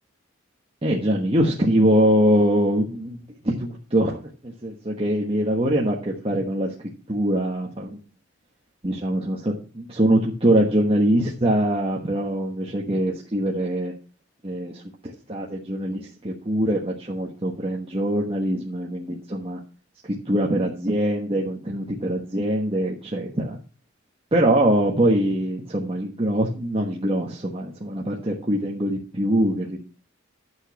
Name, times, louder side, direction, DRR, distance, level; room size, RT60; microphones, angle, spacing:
voice 1, 0.8-3.2 3.4-6.7 7.1-8.0 8.8-13.9 14.4-14.8 15.3-19.6 20.0-23.6 24.3-29.8, right 1 dB, 30° right, -2 dB, 1.3 m, -23 dB
11.5 x 6.3 x 5.8 m, 0.37 s
head